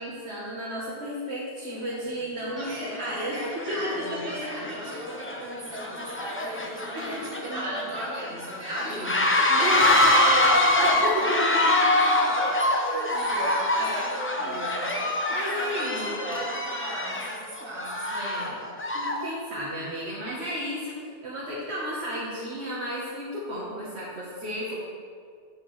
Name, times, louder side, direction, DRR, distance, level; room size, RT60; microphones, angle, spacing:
voice 1, 0.0-3.4 3.7-3.9 4.4-4.5 6.9-7.1 7.5-7.8 9.3-11.8 13.8-14.1 15.3-16.2 18.1-18.6 18.9-20.9 21.2-24.8, equal, 80° right, -6 dB, 1.4 m, -32 dB
sound 1, 1.9-2.0 2.7-3.0 3.3-19.3, left 1 dB, 20° left, 0.4 m, -25 dB
voice 2, 2.4-9.4 11.9-18.7, right 1 dB, 55° right, -5 dB, 1.9 m, -37 dB
13.5 x 4.5 x 3.1 m, 2.1 s
omnidirectional pair, 1.1 m